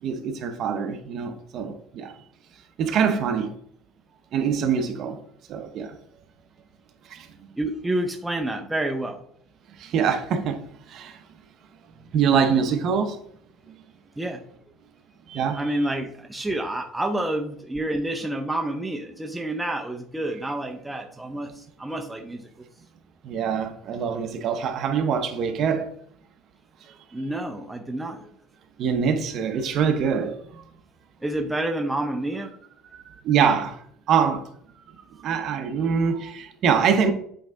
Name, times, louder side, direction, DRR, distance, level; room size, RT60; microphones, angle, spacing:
voice 1, 0.0-2.1 2.8-3.5 4.3-5.2 5.5-5.9 7.1-7.3 9.8-10.6 10.9-11.2 12.1-13.2 15.3-15.6 23.2-25.9 28.8-30.6 32.9-33.8 34.1-34.4 35.2-37.1, right 7 dB, 50° right, 0.8 m, -24 dB
voice 2, 7.6-9.2 14.2-14.4 15.6-22.5 27.1-28.3 31.2-32.5, right 1 dB, 5° right, 0.5 m, -29 dB
8.0 x 3.3 x 3.7 m
cardioid pair, 130°, 0 cm